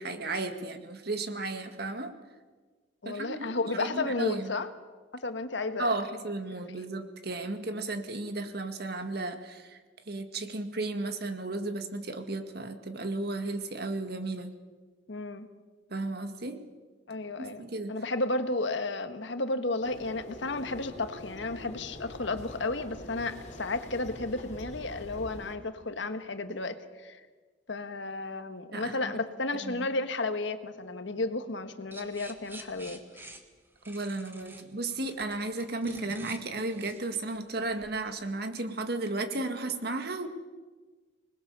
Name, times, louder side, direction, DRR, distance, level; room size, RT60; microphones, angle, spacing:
voice 1, 0.0-2.1 3.1-4.5 5.8-9.8 10.1-14.5 15.9-16.6 17.4-17.9 28.7-29.1 29.6-29.9 33.9-40.3, right 2 dB, 55° right, 7 dB, 1.9 m, -34 dB
voice 2, 3.0-4.7 5.1-5.9 15.1-15.5 17.1-17.6 17.9-27.2 27.7-33.0 35.8-36.1, left 2 dB, 70° left, 9 dB, 1.5 m, -33 dB
sound 1, 19.8-25.5, left 1 dB, 40° left, 3.4 m, -45 dB
sound 2, 31.9-38.0, right 2 dB, 10° right, 1.6 m, -49 dB
26.0 x 20.5 x 7.0 m, 1.4 s
head